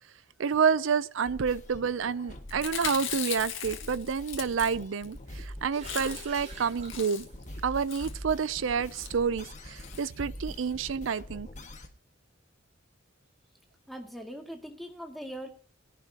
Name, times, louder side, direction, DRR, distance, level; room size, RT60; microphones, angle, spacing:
voice 1, 0.4-7.3 7.6-11.5, right 6 dB, 80° right, 0.5 m, -29 dB
sound 1, 1.2-11.9, left 1 dB, 40° left, 1.6 m, -44 dB
Chewing mastication, 2.5-5.1 5.4-5.5 5.7-6.4 6.7-7.4 7.9-8.2 8.8-9.1 9.8-10.0 10.3-10.4 10.6-10.7, left 9 dB, 75° left, 1.8 m, -38 dB
sound 2, 5.3-10.9, right 2 dB, 40° right, 5.1 m, -51 dB
voice 2, 13.9-15.5, equal, ahead, 2.2 m, -41 dB
21.5 x 11.0 x 2.8 m
head